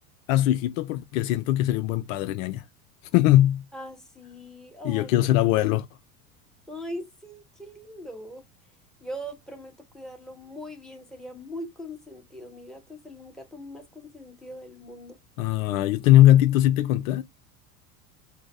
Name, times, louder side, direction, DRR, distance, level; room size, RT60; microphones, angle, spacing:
voice 1, 0.3-2.6 3.1-3.6 4.8-5.9 15.4-17.2, left 14 dB, 65° left, 0.5 m, -20 dB
voice 2, 3.7-5.1 6.7-8.4 9.0-15.2, equal, ahead, 1.3 m, -41 dB
3.9 x 2.1 x 3.2 m
hypercardioid pair, 85°, 44 cm